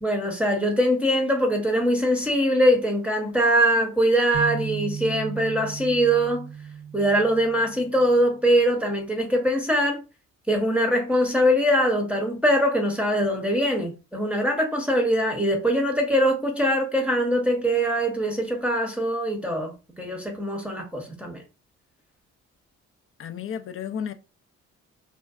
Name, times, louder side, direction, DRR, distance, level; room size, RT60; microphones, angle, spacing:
voice 1, 0.0-6.5 6.9-10.0 10.5-21.4, equal, 5° right, 0.7 m, -22 dB
sound 1, 4.3-8.4, right 7 dB, 45° right, 0.7 m, -36 dB
voice 2, 23.2-24.1, left 8 dB, 40° left, 0.4 m, -32 dB
2.5 x 2.2 x 2.3 m
supercardioid pair, 60°, 34 cm